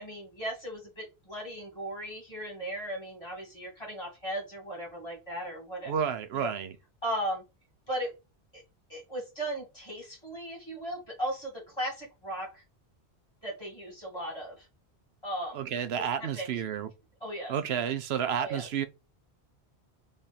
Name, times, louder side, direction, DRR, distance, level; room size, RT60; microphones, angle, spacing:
voice 1, 0.0-5.9 6.3-6.5 7.0-7.4 7.9-8.1 8.5-8.6 8.9-12.6 13.4-14.7 15.2-15.6 16.0-16.1 16.3-16.6 17.2-17.5 18.4-18.7, right 1 dB, 25° left, 1.9 m, -37 dB
voice 2, 5.9-6.7 15.5-16.9 17.5-18.9, right 8 dB, 70° right, 0.8 m, -31 dB
3.6 x 3.2 x 4.1 m
omnidirectional pair, 1.1 m